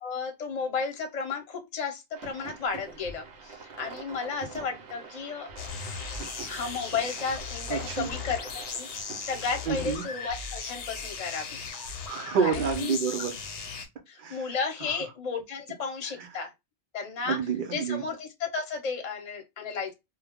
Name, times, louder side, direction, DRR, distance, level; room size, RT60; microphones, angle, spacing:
voice 1, 0.0-5.5 6.5-8.9 9.2-11.6 12.4-13.0 14.1-16.5 16.9-17.4 17.7-19.9, left 5 dB, 40° left, 0.7 m, -33 dB
sound 1, 2.1-10.1, right 4 dB, 75° right, 1.0 m, -44 dB
sound 2, 5.6-13.9, left 5 dB, 80° left, 0.9 m, -37 dB
voice 2, 7.7-8.1 9.7-10.0 12.1-13.4 14.2-14.5 17.3-18.0, right 6 dB, 55° right, 0.7 m, -28 dB
2.3 x 2.0 x 3.3 m
omnidirectional pair, 1.2 m